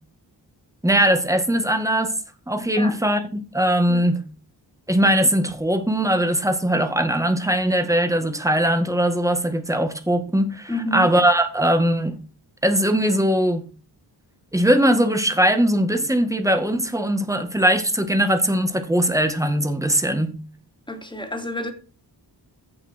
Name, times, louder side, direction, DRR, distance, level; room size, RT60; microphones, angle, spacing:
voice 1, 0.8-2.1 2.5-4.2 4.9-12.2 12.6-13.7 14.5-20.4, right 1 dB, 5° right, 1.9 m, -20 dB
voice 2, 10.7-11.1 20.9-21.7, left 1 dB, 10° left, 2.7 m, -29 dB
15.5 x 5.9 x 4.5 m
wide cardioid pair, 115°, 44 cm